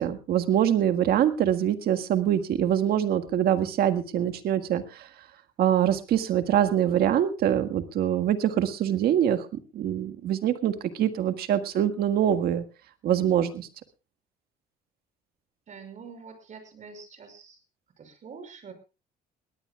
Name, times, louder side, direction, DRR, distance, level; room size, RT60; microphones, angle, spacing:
voice 1, 0.0-5.1 5.6-9.5 9.7-12.6 13.0-13.7, right 10 dB, 65° right, 9 dB, 1.8 m, -24 dB
voice 2, 15.7-17.6 18.0-18.7, right 5 dB, 45° right, 7 dB, 6.1 m, -45 dB
21.0 x 18.0 x 2.4 m, 0.30 s
cardioid pair, 110°, 17 cm